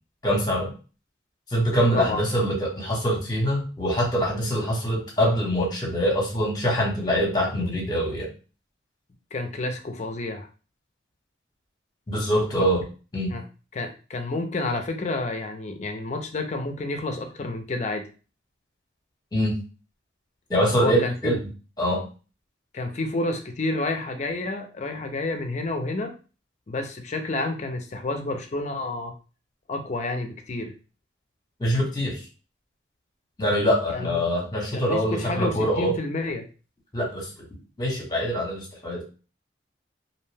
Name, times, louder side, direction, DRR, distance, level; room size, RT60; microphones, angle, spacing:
voice 1, 0.2-0.7 1.5-8.3 12.1-12.8 13.1-13.4 19.3-19.5 20.5-21.4 21.8-22.0 31.6-32.2 33.4-35.9 36.9-37.3 37.8-39.0, equal, 20° left, -2 dB, 0.9 m, -24 dB
voice 2, 9.3-10.5 12.3-12.7 13.3-13.4 13.7-18.1 20.8-21.3 22.7-26.1 26.7-29.1 29.7-30.7 33.9-34.2 34.7-36.5, left 2 dB, 35° left, 5 dB, 0.4 m, -29 dB
2.6 x 2.1 x 3.2 m, 0.36 s
head